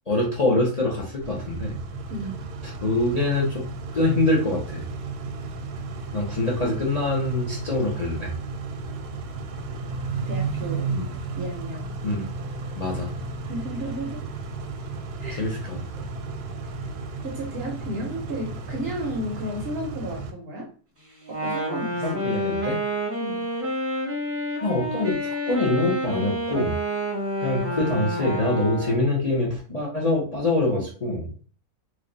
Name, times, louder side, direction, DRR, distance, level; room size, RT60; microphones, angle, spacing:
voice 1, 0.1-1.8 2.8-3.6 3.9-4.8 6.1-8.3 10.9-11.0 12.0-12.3 12.8-13.1 15.3-15.8 22.0-22.8 24.6-26.8 27.4-31.3, left 2 dB, 35° left, -2 dB, 0.6 m, -24 dB
Car / Idling / Accelerating revving vroom, 1.2-20.3, right 3 dB, 85° right, 1.1 m, -33 dB
voice 2, 2.1-2.5 10.3-11.0 11.3-11.9 13.4-14.2 15.2-15.5 17.2-20.7 21.4-22.2 23.2-23.5, right 1 dB, 50° right, 1 dB, 0.8 m, -33 dB
Wind instrument woodwind instrument, 21.2-29.2, right 1 dB, 15° right, 0.6 m, -29 dB
3.3 x 2.3 x 3.8 m, 0.41 s
omnidirectional pair, 1.6 m